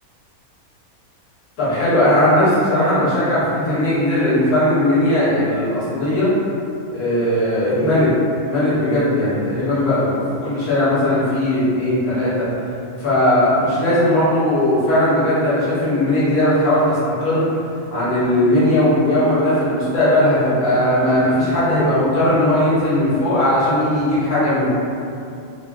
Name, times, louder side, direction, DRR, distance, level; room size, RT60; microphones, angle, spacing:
voice 1, 1.6-6.3 6.9-8.1 8.5-12.5 13.0-17.4 17.9-24.7, left 1 dB, 75° left, -11 dB, 1.5 m, -18 dB
3.7 x 2.2 x 2.3 m, 2.5 s
omnidirectional pair, 1.5 m